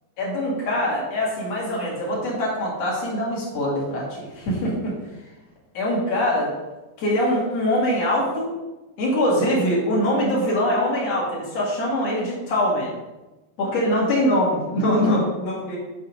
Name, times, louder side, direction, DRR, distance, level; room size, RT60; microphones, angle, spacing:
voice 1, 0.2-5.0 5.7-6.5 7.0-8.5 9.0-12.9 13.6-15.8, left 1 dB, 50° left, -4 dB, 2.3 m, -23 dB
8.5 x 4.0 x 5.1 m, 1.1 s
omnidirectional pair, 4.9 m